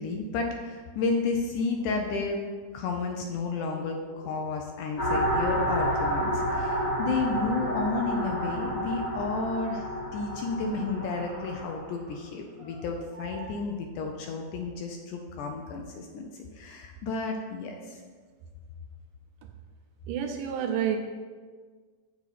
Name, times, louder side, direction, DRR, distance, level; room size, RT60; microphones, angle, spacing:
voice 1, 0.0-2.4 2.7-18.0, left 4 dB, 75° left, 3 dB, 2.0 m, -32 dB
sound 1, 1.5-5.1 5.4-9.9 10.4-10.5 10.7-13.5, right 1 dB, 40° right, 2.3 m, -45 dB
sound 2, 5.0-11.7, equal, 30° left, 1.8 m, -30 dB
voice 2, 20.1-21.0, right 9 dB, 80° right, 5 dB, 2.0 m, -28 dB
8.1 x 7.3 x 4.1 m, 1.5 s
omnidirectional pair, 4.1 m